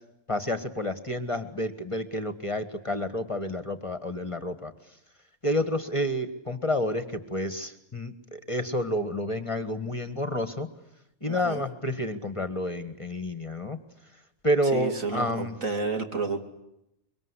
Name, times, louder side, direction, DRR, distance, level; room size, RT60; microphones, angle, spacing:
voice 1, 0.3-5.0 5.4-10.7 11.2-13.8 14.1-15.5, left 1 dB, 25° left, 10 dB, 1.6 m, -29 dB
voice 2, 11.3-11.7 14.7-16.4, right 3 dB, 75° right, 5 dB, 3.1 m, -31 dB
25.0 x 23.0 x 9.8 m, 0.83 s
omnidirectional pair, 1.4 m